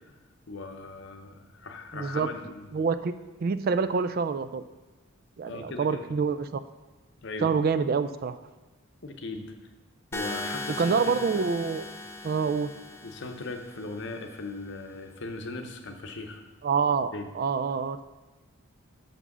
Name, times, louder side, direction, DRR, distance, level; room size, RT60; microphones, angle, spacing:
voice 1, 0.5-2.7 5.5-6.0 7.2-7.5 9.0-9.5 10.1-11.2 13.0-16.4 17.1-17.3, left 3 dB, 55° left, 5 dB, 0.8 m, -38 dB
voice 2, 1.9-2.3 2.7-3.1 3.4-4.6 5.4-6.6 7.4-8.4 10.8-11.9 12.2-12.7 16.6-18.0, right 5 dB, 45° right, 12 dB, 0.3 m, -26 dB
sound 1, 10.1-14.1, left 2 dB, 10° left, 0.5 m, -38 dB
6.8 x 6.0 x 6.0 m, 1.2 s
head